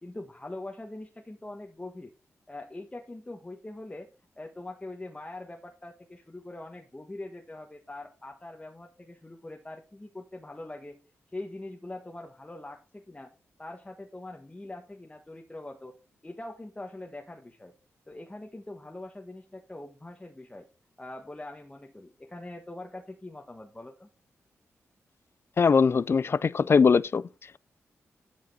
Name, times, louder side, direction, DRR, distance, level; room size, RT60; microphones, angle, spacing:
voice 1, 0.0-2.1 2.5-11.0 11.3-13.3 13.6-15.9 16.2-17.7 18.1-20.7 21.0-24.1, left 2 dB, 20° left, 1.3 m, -43 dB
voice 2, 25.6-27.2, left 5 dB, 50° left, 0.4 m, -21 dB
11.0 x 5.2 x 4.1 m
cardioid pair, 60°, 5 cm